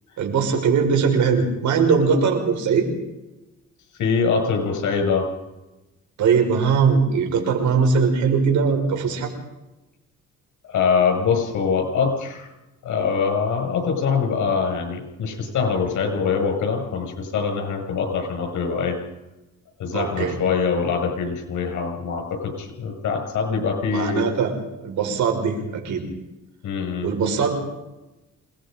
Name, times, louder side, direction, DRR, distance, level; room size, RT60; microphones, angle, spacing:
voice 1, 0.2-2.9 6.2-9.3 19.9-20.4 23.9-24.5 24.8-26.0 27.0-27.6, right 5 dB, 75° right, 3 dB, 6.0 m, -20 dB
voice 2, 4.0-5.3 10.7-12.5 12.8-19.0 19.8-24.3 26.6-27.1, left 5 dB, 75° left, 4 dB, 6.9 m, -23 dB
28.0 x 20.0 x 5.3 m, 1.0 s
cardioid pair, 90°, 30 cm